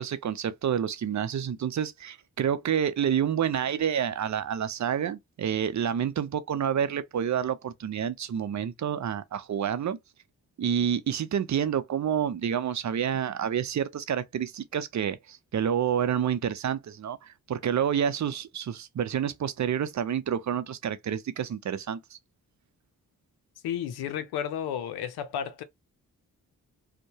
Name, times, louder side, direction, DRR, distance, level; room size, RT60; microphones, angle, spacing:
voice 1, 0.0-10.0 10.6-22.0, right 8 dB, 50° right, 0.6 m, -28 dB
voice 2, 23.6-25.6, left 9 dB, 85° left, 0.6 m, -32 dB
2.7 x 2.1 x 2.7 m
supercardioid pair, 45°, 37 cm